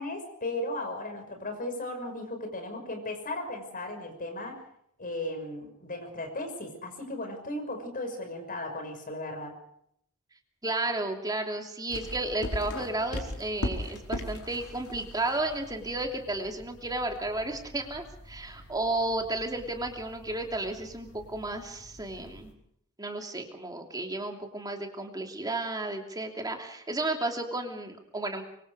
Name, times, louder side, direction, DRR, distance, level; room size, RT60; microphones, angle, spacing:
voice 1, 0.0-4.6 5.0-9.5, left 1 dB, 40° left, 5 dB, 6.0 m, -36 dB
voice 2, 10.6-22.5 23.0-28.4, right 2 dB, 20° right, 3 dB, 2.9 m, -33 dB
sound 1, 11.9-22.5, left 1 dB, 80° left, 4.7 m, -41 dB
25.0 x 24.5 x 4.9 m, 0.70 s
head